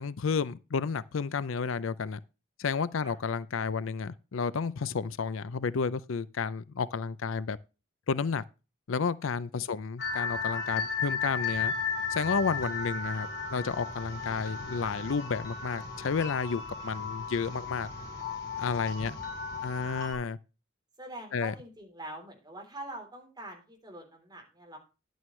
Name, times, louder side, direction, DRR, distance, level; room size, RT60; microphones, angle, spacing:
voice 1, 0.0-2.2 2.6-7.6 8.1-8.4 8.9-11.7 12.1-17.9 18.6-19.1 19.6-20.4 21.3-21.5, left 5 dB, 75° left, 0.5 m, -31 dB
sound 1, 10.0-20.1, left 5 dB, 50° left, 4.3 m, -35 dB
voice 2, 19.6-19.9 21.0-24.8, right 1 dB, 20° right, 3.5 m, -45 dB
11.0 x 9.2 x 3.2 m
head